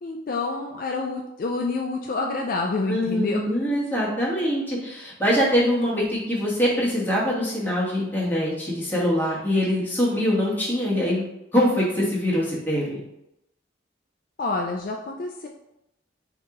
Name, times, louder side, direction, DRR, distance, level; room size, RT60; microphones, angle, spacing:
voice 1, 0.0-3.4 14.4-15.5, left 3 dB, 50° left, 1 dB, 0.3 m, -28 dB
voice 2, 2.9-11.2 11.5-13.0, equal, 10° left, -6 dB, 1.2 m, -23 dB
4.5 x 2.9 x 3.6 m, 0.85 s
head